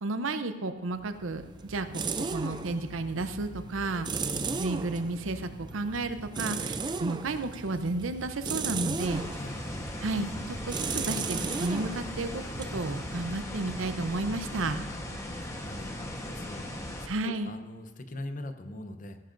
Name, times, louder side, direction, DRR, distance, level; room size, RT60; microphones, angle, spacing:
voice 1, 0.0-4.1 4.6-9.2 10.0-12.4 12.7-14.8 17.1-17.5, right 2 dB, 90° right, 10 dB, 0.7 m, -32 dB
sound 1, 1.0-13.7, right 4 dB, 20° right, 0.4 m, -36 dB
voice 2, 4.2-4.6 9.4-9.6 14.9-15.0 15.4-16.6 17.0-19.2, left 1 dB, 40° left, 8 dB, 0.7 m, -41 dB
sound 2, 9.0-17.1, left 1 dB, 15° left, 1.1 m, -38 dB
15.5 x 10.5 x 2.6 m, 1.3 s
head